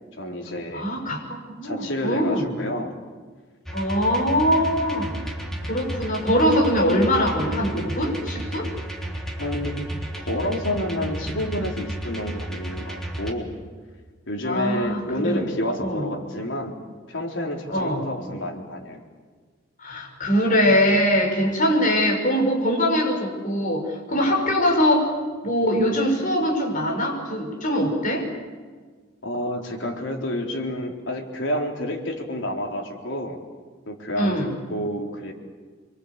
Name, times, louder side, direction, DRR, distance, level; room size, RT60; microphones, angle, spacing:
voice 1, 0.2-0.9 1.6-2.9 9.4-13.5 14.3-16.8 17.1-19.0 29.2-33.4 33.9-35.3, left 1 dB, 80° left, 1 dB, 4.1 m, -29 dB
voice 2, 0.7-2.5 3.7-5.1 5.7-8.7 14.4-15.4 15.8-16.1 17.7-18.0 19.8-25.0 25.4-28.3 34.2-34.5, equal, 45° left, 1 dB, 5.7 m, -22 dB
sound 1, 3.7-13.3, right 1 dB, ahead, 3.5 m, -33 dB
27.0 x 23.5 x 8.4 m, 1.5 s
head